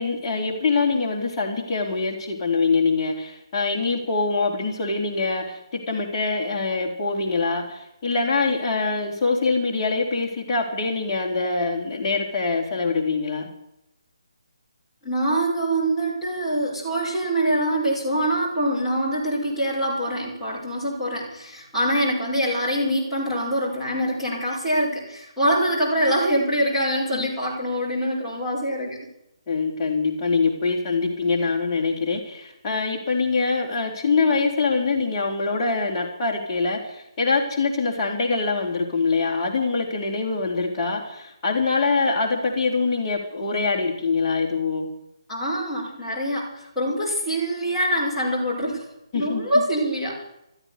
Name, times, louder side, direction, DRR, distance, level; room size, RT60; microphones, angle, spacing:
voice 1, 0.0-13.5 27.1-27.3 29.5-44.9 49.1-49.4, left 4 dB, 20° left, -3 dB, 4.1 m, -24 dB
voice 2, 15.0-29.0 45.3-48.8 49.1-50.2, right 1 dB, 5° left, -9 dB, 5.9 m, -24 dB
15.0 x 13.5 x 7.0 m, 0.84 s
figure-of-eight pair, 145°, 3 cm